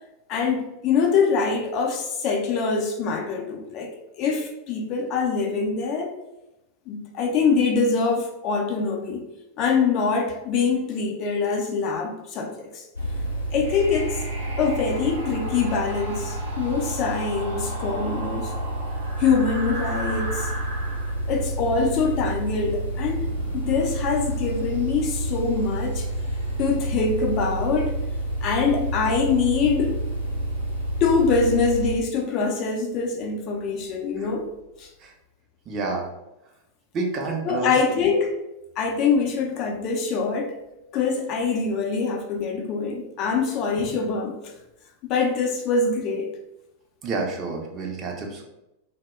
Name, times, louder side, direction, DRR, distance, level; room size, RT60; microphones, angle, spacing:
voice 1, 0.3-6.1 6.9-9.3 9.6-12.9 13.5-14.2 14.6-18.5 19.2-20.5 21.3-23.3 23.5-26.1 26.6-27.9 28.4-30.0 31.0-34.5 34.8-34.9 37.4-38.3 38.8-40.6 40.9-44.6 45.0-46.3, left 5 dB, 40° left, 1 dB, 0.4 m, -24 dB
sound 1, 12.9-31.9, right 1 dB, 80° left, 0.6 m, -29 dB
sound 2, 13.6-29.4, right 1 dB, 70° right, 0.6 m, -39 dB
voice 2, 35.7-36.1 36.9-38.2 47.0-48.4, right 3 dB, 30° right, 0 dB, 0.5 m, -29 dB
2.0 x 2.0 x 3.5 m, 0.92 s
figure-of-eight pair, 90°, 0 cm